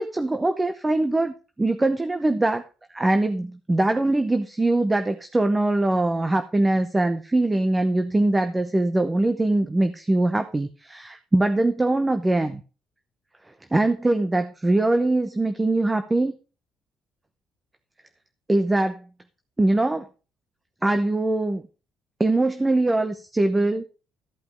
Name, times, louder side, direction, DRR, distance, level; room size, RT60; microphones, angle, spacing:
voice 1, 0.0-2.7 2.9-12.6 13.7-16.3 18.5-19.0 19.6-20.0 20.8-21.6 22.2-23.8, right 2 dB, 15° right, 9 dB, 0.9 m, -22 dB
14.0 x 5.4 x 5.3 m, 0.34 s
cardioid pair, 100°, 0 cm